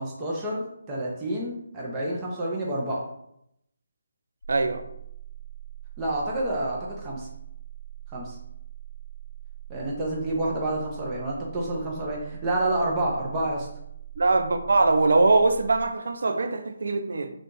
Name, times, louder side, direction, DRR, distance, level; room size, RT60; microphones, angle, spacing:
voice 1, 0.0-3.0 6.0-7.3 8.1-8.4 9.7-13.7, right 1 dB, 20° right, -3 dB, 0.7 m, -29 dB
sound 1, 4.4-15.9, right 13 dB, 75° left, 0.3 m, -42 dB
voice 2, 4.5-4.8 14.2-17.3, right 3 dB, 70° right, 7 dB, 0.4 m, -22 dB
2.8 x 2.5 x 3.7 m, 0.77 s
figure-of-eight pair, 155°, 0 cm